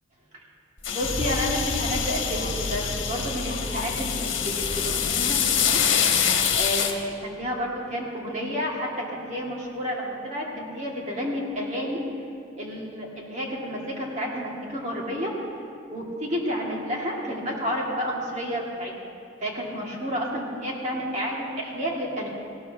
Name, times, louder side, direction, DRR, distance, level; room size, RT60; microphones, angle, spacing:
sound 1, 0.8-6.9, left 8 dB, 75° left, 1.3 m, -26 dB
voice 1, 0.9-5.8 6.5-12.0 12.6-15.3 15.9-18.9 19.4-22.3, equal, 35° right, -3 dB, 2.1 m, -30 dB
sound 2, 1.0-6.6, left 1 dB, 50° left, 2.3 m, -33 dB
18.5 x 17.5 x 2.9 m, 2.6 s
head